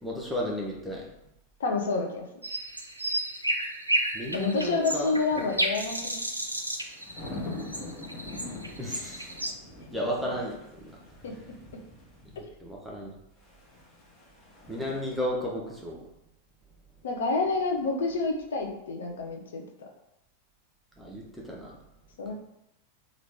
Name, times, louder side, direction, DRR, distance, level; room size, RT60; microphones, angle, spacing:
voice 1, 0.0-1.1 4.1-5.1 8.8-9.3 9.9-11.3 12.3-13.1 14.7-16.0 21.0-21.8, equal, 5° right, -4 dB, 0.7 m, -34 dB
voice 2, 1.6-2.3 4.3-6.2 11.2-11.3 17.0-19.9 22.2-22.3, left 3 dB, 60° left, 2 dB, 0.6 m, -29 dB
sound 1, 2.4-9.5, right 1 dB, 85° right, 0.4 m, -32 dB
sound 2, 6.1-12.4 13.4-15.0, left 2 dB, 25° left, 1.2 m, -43 dB
3.1 x 2.4 x 3.4 m, 0.85 s
figure-of-eight pair, 90°, 0 cm